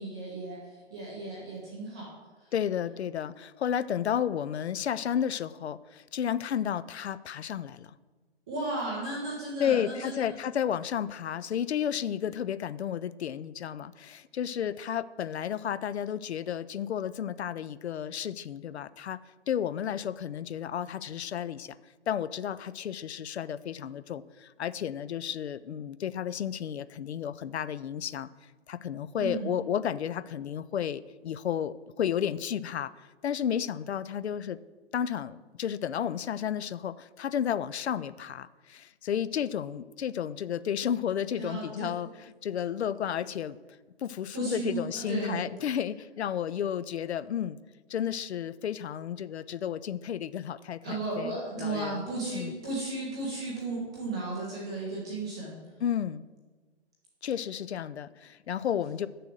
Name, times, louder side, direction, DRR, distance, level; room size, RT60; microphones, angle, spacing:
voice 1, 0.0-2.1 8.5-10.2 29.2-29.6 41.3-41.9 44.3-45.4 50.8-55.6, right 3 dB, 5° right, -6 dB, 0.4 m, -35 dB
voice 2, 2.5-7.9 9.6-19.2 19.5-21.8 22.1-28.3 28.7-32.9 33.2-34.6 34.9-43.6 44.0-47.6 47.9-52.1 52.3-52.5 55.8-56.2 57.2-59.1, left 9 dB, 70° left, 16 dB, 0.5 m, -32 dB
6.8 x 6.4 x 7.5 m, 1.3 s
hypercardioid pair, 150°, 34 cm